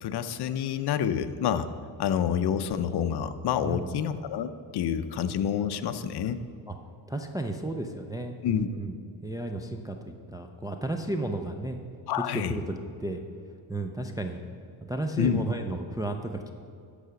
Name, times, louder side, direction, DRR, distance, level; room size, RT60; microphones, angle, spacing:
voice 1, 0.0-1.7 2.0-6.4 8.4-8.7 12.1-12.5 15.2-15.4, left 8 dB, 50° left, 11 dB, 0.7 m, -28 dB
voice 2, 7.1-9.0 9.2-11.8 12.2-13.2 13.7-14.4 14.9-16.5, right 2 dB, 10° right, 3 dB, 0.5 m, -33 dB
12.5 x 5.0 x 6.9 m, 2.4 s
cardioid pair, 105°, 49 cm